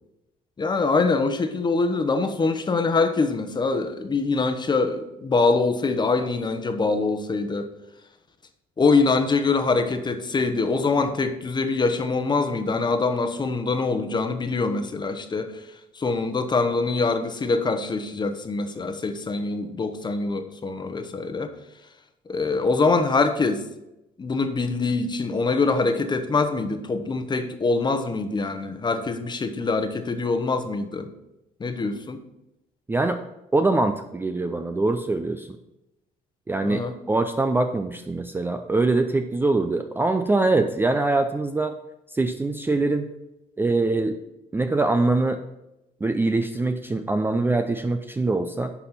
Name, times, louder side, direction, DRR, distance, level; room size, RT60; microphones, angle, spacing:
voice 1, 0.6-7.7 8.8-15.5 15.9-21.5 22.3-23.6 24.2-31.1 31.6-32.2 36.6-36.9, left 3 dB, 25° left, 7 dB, 1.0 m, -24 dB
voice 2, 32.9-33.2 33.5-35.6 36.5-36.8 37.1-41.8 42.1-43.1 43.6-44.2 44.5-45.4 46.0-48.7, right 2 dB, 15° right, 7 dB, 0.4 m, -23 dB
11.0 x 4.2 x 5.7 m, 0.92 s
cardioid pair, 110°, 17 cm